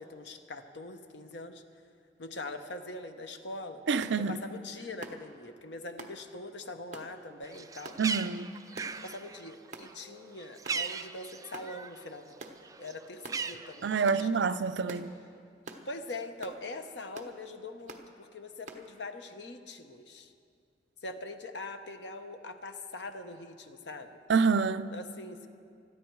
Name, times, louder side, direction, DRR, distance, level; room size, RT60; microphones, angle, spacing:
voice 1, 0.0-1.6 2.2-3.8 4.2-7.9 9.0-12.4 12.8-14.5 15.8-20.3 21.0-24.2 24.9-25.5, left 2 dB, 70° left, 1.0 m, -43 dB
voice 2, 3.9-4.4 8.0-8.5 13.8-15.1 24.3-24.9, right 5 dB, 75° right, 0.5 m, -27 dB
sound 1, 4.0-4.2 5.0-5.2 6.0-6.2 6.9-7.1 7.8-8.0 8.7-9.0 9.7-9.9 10.6-10.8 11.5-11.7 12.4-12.6 13.2-13.4 14.1-14.2 14.9-15.1 15.6-15.9 16.4-16.6 17.1-17.3 17.9-18.1 18.7-18.8, right 3 dB, 40° right, 1.1 m, -45 dB
Bird, 7.4-12.1 12.4-14.3, right 5 dB, 20° right, 0.3 m, -38 dB
21.0 x 13.5 x 4.7 m
head